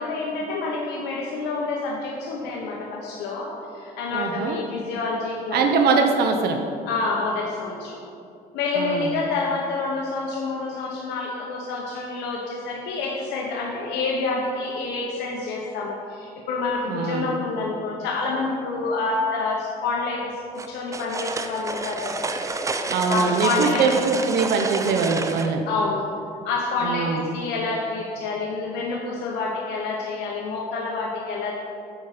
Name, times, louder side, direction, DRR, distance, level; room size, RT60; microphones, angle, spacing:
voice 1, 0.0-5.7 6.9-8.0 8.5-20.2 20.7-22.3 23.1-23.9 25.7-26.1 26.4-31.5, left 3 dB, 90° left, -2 dB, 1.0 m, -28 dB
voice 2, 4.1-4.6 5.5-6.6 8.8-9.1 16.9-17.3 22.9-25.7 26.8-27.2, right 5 dB, 70° right, 4 dB, 0.8 m, -22 dB
sound 1, 20.6-25.5, right 3 dB, 20° right, 0.6 m, -29 dB
9.3 x 5.1 x 5.9 m, 2.6 s
cardioid pair, 110°, 17 cm